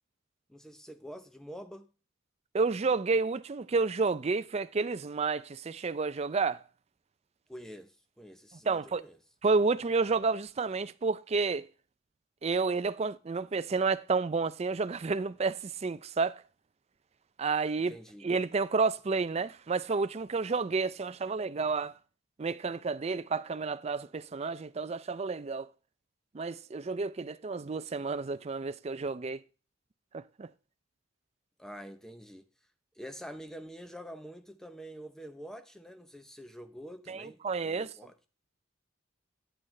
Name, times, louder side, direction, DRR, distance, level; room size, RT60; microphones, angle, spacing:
voice 1, 0.5-1.9 7.5-9.2 17.9-18.3 31.6-32.4 33.0-38.1, equal, ahead, 0.7 m, -46 dB
voice 2, 2.5-6.6 8.7-9.0 9.4-11.7 12.4-16.4 17.4-17.9 18.2-21.9 22.4-25.7 26.3-29.4 30.1-30.5 37.1-37.9, right 4 dB, 30° right, 0.4 m, -30 dB
9.0 x 8.5 x 3.2 m
head